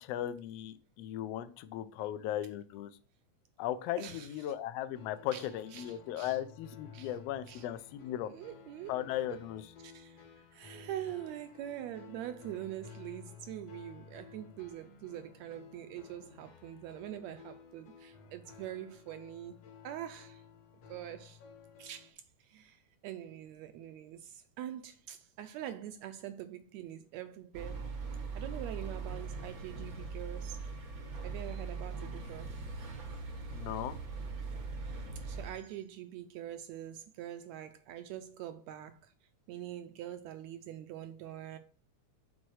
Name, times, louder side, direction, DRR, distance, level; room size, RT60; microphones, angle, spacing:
voice 1, 0.0-2.9 3.6-8.3 8.9-9.6 33.5-34.0, left 12 dB, 80° left, 1.5 m, -37 dB
voice 2, 4.0-4.5 5.3-6.4 6.9-7.2 7.5-7.7 8.1-8.9 9.2-9.5 9.8-10.2 10.5-19.5 19.8-20.4 20.9-21.4 21.8-27.9 28.3-30.6 31.1-32.6 34.8-39.1 39.5-41.6, right 12 dB, 80° right, 1.7 m, -44 dB
sound 1, 4.9-22.1, left 6 dB, 60° left, 2.0 m, -54 dB
sound 2, 27.5-35.5, right 4 dB, 65° right, 0.8 m, -41 dB
6.2 x 4.1 x 6.3 m
omnidirectional pair, 3.4 m